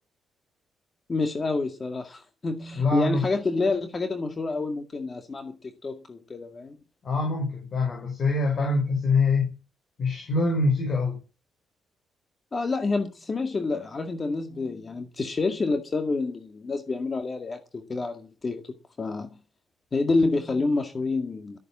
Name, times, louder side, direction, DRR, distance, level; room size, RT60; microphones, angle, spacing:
voice 1, 1.1-6.8 12.5-19.3 19.9-21.6, left 3 dB, 30° left, 2.0 m, -28 dB
voice 2, 2.7-3.3 7.0-9.5 10.0-11.2, left 3 dB, 45° left, 5.1 m, -24 dB
13.5 x 9.3 x 7.4 m
cardioid pair, 120°, 0 cm